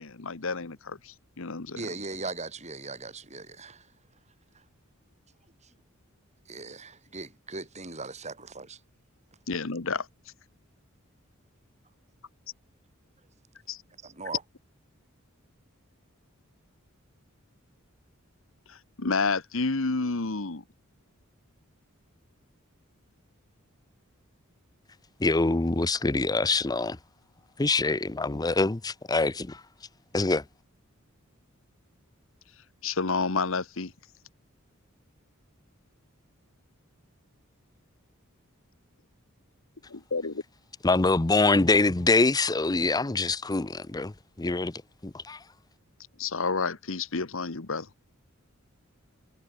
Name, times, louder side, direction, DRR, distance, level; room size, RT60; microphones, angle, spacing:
voice 1, 0.0-1.8 9.5-10.1 13.7-13.8 18.7-20.6 32.8-33.9 39.9-40.4 46.2-47.9, left 4 dB, 70° left, 1.3 m, -30 dB
voice 2, 1.7-3.9 5.6-5.7 6.5-8.8 14.0-14.4, right 3 dB, 35° right, 6.5 m, -39 dB
voice 3, 25.2-27.0 27.6-29.6 30.1-30.4 40.8-45.4, left 3 dB, 20° left, 0.6 m, -25 dB
head